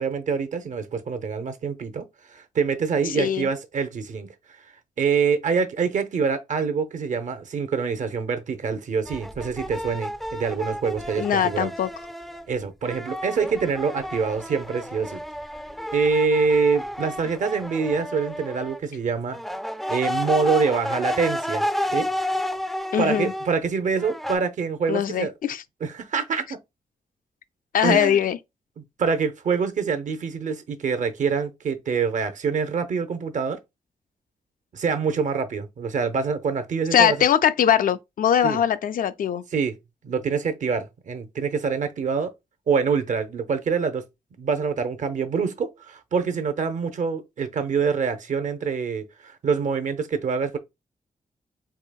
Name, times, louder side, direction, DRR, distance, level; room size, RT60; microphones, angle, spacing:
voice 1, 0.0-2.0 2.3-4.3 5.0-11.7 12.5-15.2 15.9-19.4 19.9-21.7 21.9-22.1 23.0-25.3 25.8-26.6 27.8-28.2 29.0-33.6 34.7-37.2 38.4-38.6 39.5-39.8 40.0-42.3 42.7-44.0 44.4-50.6, right 5 dB, 60° right, 0.6 m, -25 dB
voice 2, 3.1-3.5 11.2-11.9 22.9-23.3 24.9-25.6 27.7-28.4 36.9-39.4, left 9 dB, 70° left, 0.4 m, -21 dB
sound 1, 9.1-12.5 12.8-18.8 19.3-23.5 24.0-24.4, equal, ahead, 0.3 m, -31 dB
4.8 x 2.7 x 2.2 m
wide cardioid pair, 135°, 15 cm